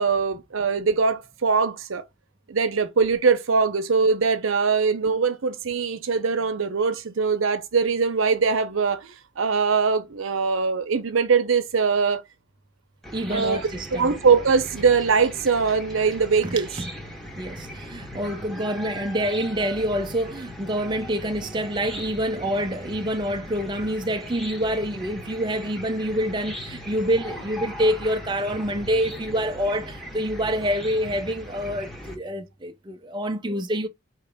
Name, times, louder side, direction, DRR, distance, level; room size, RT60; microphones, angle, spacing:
voice 1, 0.0-2.0 2.5-12.2 13.3-16.7 18.6-18.7, right 5 dB, 80° right, 0.7 m, -22 dB
Chicken rooster / Cricket, 13.0-32.1, equal, ahead, 0.9 m, -39 dB
voice 2, 13.1-14.2 16.4-16.5 17.4-33.9, equal, 20° right, 0.4 m, -27 dB
4.7 x 2.9 x 3.3 m
head